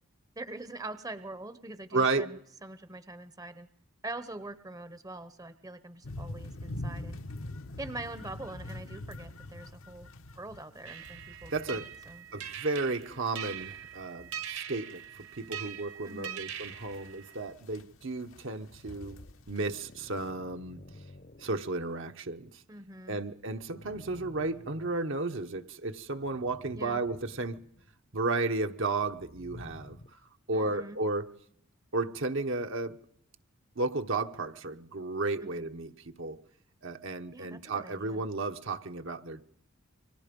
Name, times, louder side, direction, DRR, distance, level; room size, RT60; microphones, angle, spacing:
voice 1, 0.4-3.7 4.0-7.2 7.8-10.1 10.4-12.3 16.0-16.4 22.7-23.2 26.7-27.0 30.5-31.0 35.4-35.6 37.3-38.2, right 2 dB, 15° right, 0.9 m, -44 dB
voice 2, 1.9-2.3 11.5-11.9 12.3-19.2 19.5-20.8 21.4-22.6 23.1-27.6 28.1-30.2 30.5-31.3 31.9-33.0 33.8-36.4 36.8-39.4, right 3 dB, 60° right, 1.1 m, -33 dB
sound 1, 6.0-12.7 13.0-15.8 16.1-16.2 16.4-19.8 20.2-20.3, left 1 dB, 65° left, 1.1 m, -44 dB
sound 2, 10.9-17.5, right 9 dB, 80° right, 2.7 m, -42 dB
sound 3, 18.9-21.9 23.3-25.6 26.1-28.0 29.0-30.1, left 1 dB, 40° left, 0.9 m, -51 dB
29.5 x 24.5 x 5.3 m
head